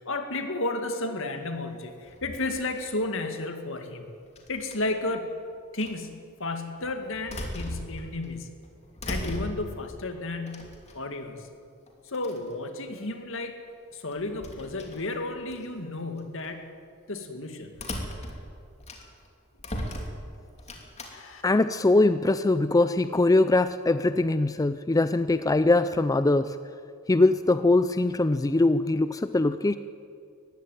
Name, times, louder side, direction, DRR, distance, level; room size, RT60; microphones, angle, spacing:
voice 1, 0.0-4.1 4.5-5.3 5.7-8.5 9.1-11.5 12.0-13.6 13.9-16.7 17.1-17.7 21.1-21.4, left 2 dB, 65° left, 6 dB, 2.2 m, -33 dB
sound 1, 2.0-3.0 4.4-5.1 5.8-6.0 6.8-8.3 8.6-9.9 10.5-11.2 11.9-12.0 12.1-12.5 14.1-15.7 16.2-16.5 17.7-19.3 19.6-21.1, left 1 dB, 30° left, 2.8 m, -38 dB
voice 2, 21.4-26.6 27.1-29.8, left 2 dB, 15° left, 12 dB, 0.4 m, -22 dB
20.0 x 15.5 x 9.3 m, 2.4 s
head